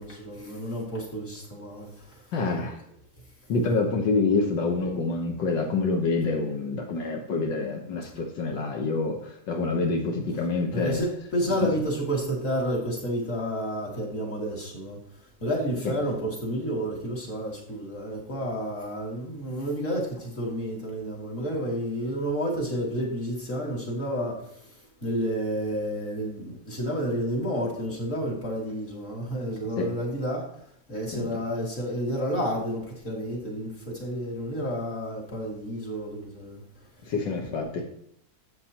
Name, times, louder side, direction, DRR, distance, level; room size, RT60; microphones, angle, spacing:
voice 1, 0.0-2.2 10.7-15.0 15.4-24.7 25.0-30.5 30.9-36.6, equal, 45° left, -3 dB, 3.0 m, -30 dB
voice 2, 2.3-2.8 3.5-11.0 29.8-29.9 31.1-31.3 37.0-37.8, left 3 dB, 80° left, 1 dB, 1.9 m, -27 dB
12.5 x 7.9 x 2.9 m, 0.73 s
omnidirectional pair, 1.9 m